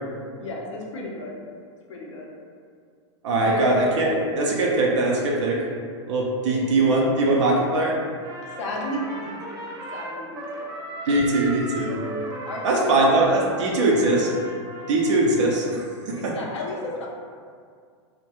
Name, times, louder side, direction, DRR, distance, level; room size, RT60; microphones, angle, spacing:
voice 1, 0.4-1.4 1.9-2.3 3.4-3.7 6.5-7.2 8.6-9.7 9.9-10.7 12.5-14.0 16.1-17.1, left 1 dB, 80° left, -2 dB, 0.6 m, -34 dB
voice 2, 3.2-5.6 6.1-7.9 11.1-12.0 12.6-14.3 14.9-16.3, right 2 dB, 80° right, -2 dB, 0.5 m, -21 dB
Trumpet, 8.2-15.8, right 1 dB, 20° right, 0.3 m, -37 dB
2.2 x 2.1 x 2.9 m, 2.1 s
hypercardioid pair, 120°, 15 cm